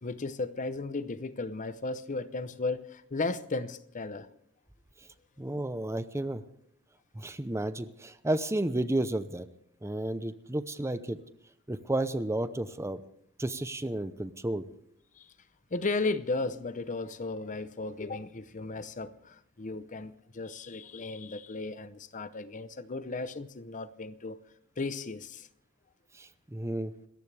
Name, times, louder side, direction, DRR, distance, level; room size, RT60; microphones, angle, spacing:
voice 1, 0.0-4.3 15.2-15.3 15.7-24.4 24.8-25.5, left 3 dB, 35° left, 0.7 m, -35 dB
voice 2, 5.4-6.4 7.1-9.5 9.8-11.2 11.7-13.0 13.4-14.7 26.2-26.9, right 1 dB, 15° right, 0.7 m, -32 dB
27.0 x 14.5 x 3.4 m
head